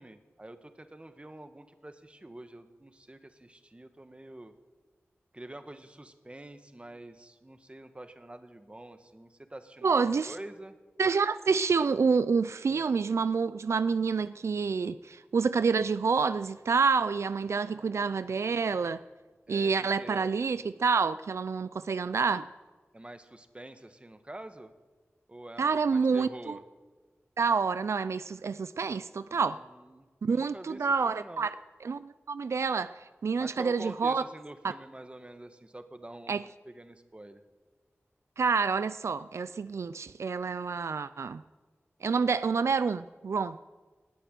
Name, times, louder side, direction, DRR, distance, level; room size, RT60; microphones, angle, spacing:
voice 1, 0.0-4.5 5.3-10.8 12.7-12.9 17.6-18.1 19.5-20.3 22.9-24.7 25.3-26.6 29.3-31.5 33.4-36.4 36.6-37.4, right 1 dB, 25° right, 1.3 m, -47 dB
voice 2, 9.8-10.3 11.0-19.0 19.5-22.5 25.6-26.6 27.4-29.6 30.2-31.5 31.8-34.2 34.6-34.7 36.3-36.4 38.4-41.4 42.0-43.6, right 5 dB, 90° right, 0.3 m, -28 dB
17.5 x 6.8 x 9.9 m
wide cardioid pair, 60°, 5 cm